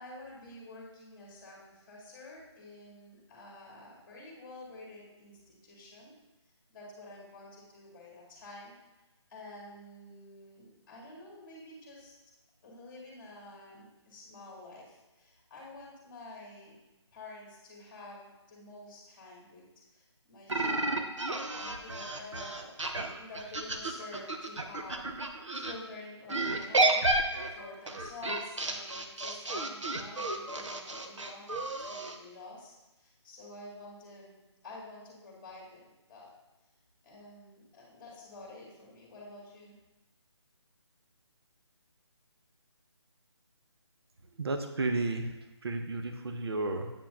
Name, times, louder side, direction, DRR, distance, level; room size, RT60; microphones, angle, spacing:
voice 1, 0.0-6.1 6.7-8.7 9.3-12.1 12.6-16.7 17.1-21.1 21.5-22.7 23.2-27.0 27.4-34.4 34.6-36.3 37.0-39.8, left 2 dB, 15° left, -4 dB, 2.3 m, -49 dB
sound 1, 20.5-25.7 26.3-32.2, right 2 dB, 90° right, 0.9 m, -32 dB
voice 2, 44.4-45.3 45.6-46.9, right 2 dB, 60° right, 6 dB, 0.7 m, -32 dB
8.6 x 5.6 x 2.6 m, 1.0 s
figure-of-eight pair, 160°, 15 cm